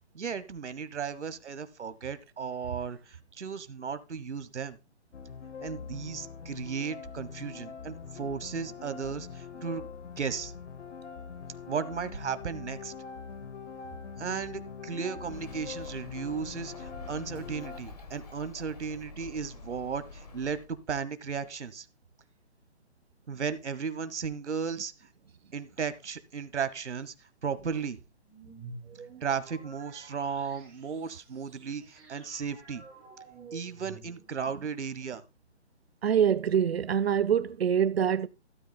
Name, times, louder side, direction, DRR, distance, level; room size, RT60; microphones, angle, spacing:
voice 1, 0.1-4.8 5.6-9.9 10.2-10.5 11.7-12.9 14.2-21.9 23.3-24.9 25.5-27.1 27.4-28.0 29.2-32.8 33.5-35.2, right 6 dB, 75° right, 1.3 m, -35 dB
sound 1, 5.1-17.8, left 6 dB, 75° left, 1.0 m, -43 dB
Bird, 15.2-20.7, left 2 dB, 35° left, 1.5 m, -47 dB
sound 2, 28.2-34.5, right 4 dB, 5° right, 1.6 m, -50 dB
voice 2, 36.0-38.3, right 8 dB, 60° right, 0.7 m, -25 dB
12.5 x 12.5 x 2.3 m
hypercardioid pair, 175°, 35 cm